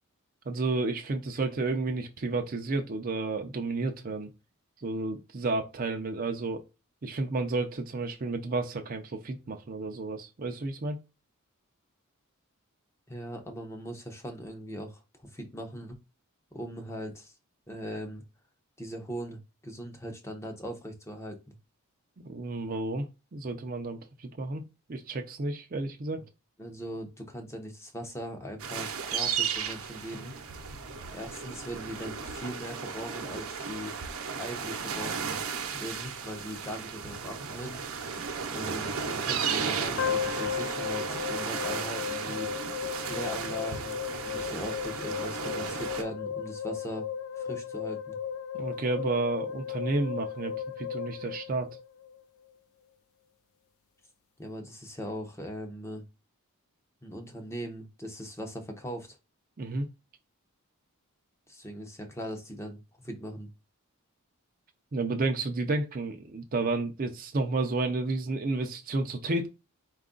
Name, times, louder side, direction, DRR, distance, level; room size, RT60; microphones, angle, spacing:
voice 1, 0.5-4.3 4.8-6.6 7.0-11.0 22.2-24.6 24.9-26.2 48.5-51.7 59.6-59.9 64.9-69.5, right 3 dB, 40° right, 0.5 m, -31 dB
voice 2, 13.1-16.0 16.5-17.3 17.7-18.2 18.8-21.6 26.1-26.2 26.6-30.4 31.1-33.9 34.4-35.4 35.7-37.8 38.5-42.5 43.0-47.1 47.4-48.2 54.4-56.0 57.0-59.2 61.5-63.5, equal, 10° left, 0.7 m, -40 dB
sound 1, 28.6-46.0, right 6 dB, 65° right, 0.8 m, -34 dB
sound 2, 40.0-52.2, left 8 dB, 65° left, 0.3 m, -35 dB
4.5 x 2.4 x 3.7 m
head